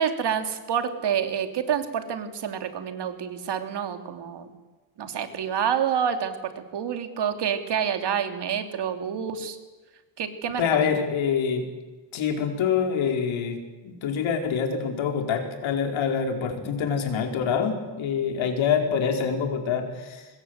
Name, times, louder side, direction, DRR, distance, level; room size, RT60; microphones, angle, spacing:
voice 1, 0.0-4.5 5.0-9.6 10.2-10.9, right 8 dB, 60° right, 7 dB, 2.9 m, -28 dB
voice 2, 10.6-11.6 12.1-13.6 13.8-20.3, left 6 dB, 85° left, 4 dB, 4.6 m, -25 dB
25.5 x 21.0 x 8.1 m, 1.2 s
cardioid pair, 125°, 45 cm